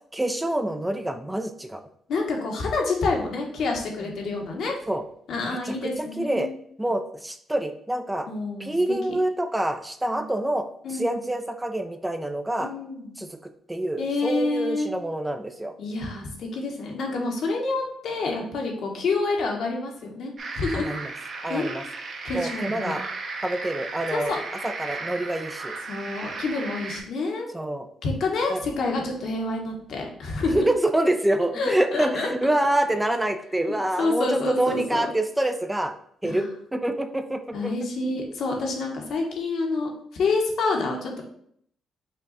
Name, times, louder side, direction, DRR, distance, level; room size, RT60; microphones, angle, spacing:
voice 1, 0.1-1.8 4.9-5.0 5.5-6.5 6.8-8.3 8.6-12.7 13.2-15.7 20.7-21.1 21.4-21.8 22.3-23.0 23.4-24.3 24.6-25.8 27.5-27.9 28.5-28.6 30.5-35.9 36.2-37.7, right 1 dB, 10° right, 7 dB, 0.4 m, -26 dB
voice 2, 2.1-4.8 5.3-6.5 8.3-8.7 10.0-10.3 10.8-11.2 12.6-13.2 14.0-14.9 15.8-20.9 21.5-21.7 22.2-22.9 24.1-24.4 25.9-27.5 28.0-30.6 31.5-32.3 33.6-35.0 36.2-36.5 37.5-41.2, left 3 dB, 70° left, 1 dB, 1.1 m, -28 dB
sound 1, 20.4-27.0, right 3 dB, 50° right, 1.0 m, -35 dB
5.4 x 2.3 x 4.0 m, 0.65 s
cardioid pair, 90°, 0 cm